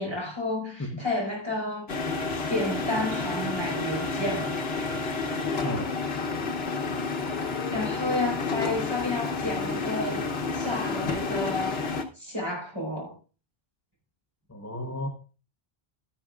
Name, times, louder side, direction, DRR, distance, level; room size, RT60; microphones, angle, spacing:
voice 1, 0.0-1.9 2.3-4.5 7.4-10.2 10.5-11.8 12.2-13.1, left 2 dB, 25° right, 4.9 m, -31 dB
sound 1, 1.9-12.0, left 4 dB, 80° left, 1.3 m, -30 dB
voice 2, 5.6-6.0 14.5-15.1, left 1 dB, 15° left, 0.9 m, -33 dB
12.5 x 11.5 x 2.4 m
omnidirectional pair, 1.0 m